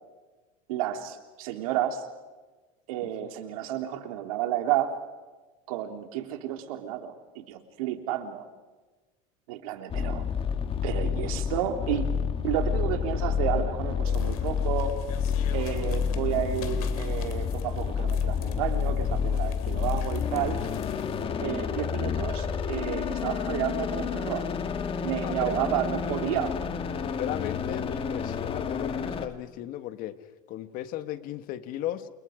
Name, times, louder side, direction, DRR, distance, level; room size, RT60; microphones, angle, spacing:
voice 1, 0.7-2.1 2.9-5.0 5.7-8.5 9.5-10.2 10.8-12.2 12.4-15.0 15.5-20.6 21.4-24.5 25.0-26.6, right 10 dB, 80° right, 6 dB, 3.1 m, -31 dB
sound 1, 9.9-29.3, left 7 dB, 30° left, 1.9 m, -29 dB
sound 2, 14.0-21.2, left 10 dB, 90° left, 2.8 m, -46 dB
voice 2, 25.2-25.5 27.0-32.1, left 13 dB, 50° left, 11 dB, 1.6 m, -36 dB
29.5 x 29.0 x 5.1 m, 1.3 s
supercardioid pair, 125°, 18 cm